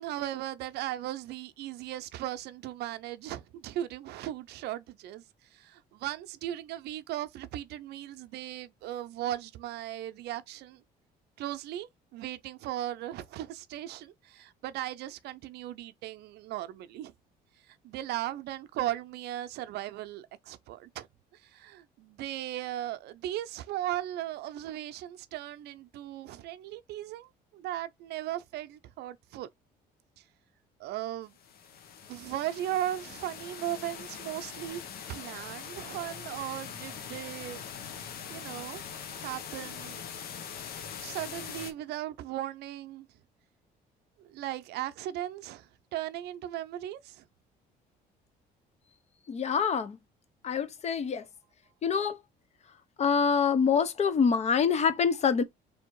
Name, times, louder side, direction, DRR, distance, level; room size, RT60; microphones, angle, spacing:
voice 1, 0.0-5.2 5.5-10.8 11.4-17.1 17.7-21.1 21.3-29.5 30.8-31.3 32.1-34.8 35.1-37.6 38.3-38.8 39.1-40.0 41.0-43.1 44.2-47.2, right 13 dB, 75° right, 0.6 m, -37 dB
sound 1, 31.4-41.7, left 7 dB, 65° left, 1.0 m, -42 dB
voice 2, 49.3-50.0 50.4-51.2 51.8-52.2 53.0-55.4, left 6 dB, 40° left, 0.7 m, -25 dB
3.5 x 2.7 x 4.5 m
cardioid pair, 110°, 17 cm